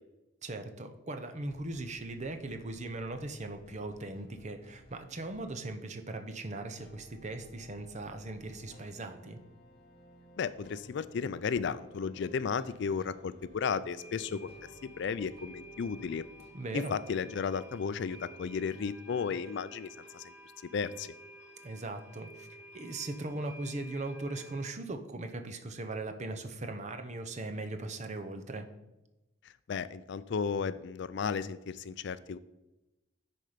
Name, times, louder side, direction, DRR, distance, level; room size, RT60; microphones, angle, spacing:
voice 1, 0.4-9.4 16.5-16.9 21.6-22.5 22.7-28.7, right 2 dB, 35° right, 7 dB, 0.7 m, -39 dB
sound 1, 1.4-5.7 6.8-16.5, equal, 30° left, 2.2 m, -58 dB
voice 2, 10.4-14.5 14.8-16.2 16.7-20.3 20.7-21.1 29.7-32.4, left 6 dB, 60° left, 15 dB, 0.4 m, -34 dB
sound 2, 12.7-12.8 13.0-13.1 13.5-13.6 14.0-24.7, right 1 dB, 50° right, 2.0 m, -52 dB
10.5 x 4.4 x 5.0 m, 0.99 s
head